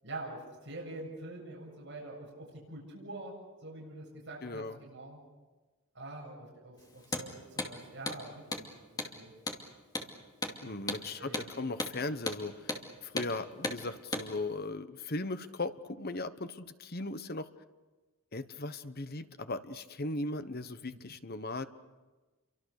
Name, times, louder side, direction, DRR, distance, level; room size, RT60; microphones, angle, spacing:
voice 1, 0.0-3.4 3.6-5.2 5.9-9.3 10.7-10.9 11.2-11.7, right 2 dB, 55° right, -4 dB, 7.7 m, -45 dB
voice 2, 4.4-4.8 10.6-12.8 13.0-17.5 18.3-21.6, left 2 dB, 45° left, 11 dB, 1.1 m, -38 dB
Hammer, 7.0-7.3 7.6-7.7 8.1-8.2 8.5-8.7 9.0-9.1 9.5-9.6 10.0-10.1 10.4-10.6 10.9-11.0 11.3-11.5 11.8-11.9 12.3-12.4 12.7-12.8 13.2-13.3 13.6-13.8 14.1-14.3, left 2 dB, 15° left, 2.5 m, -35 dB
29.0 x 24.5 x 6.6 m, 1.2 s
head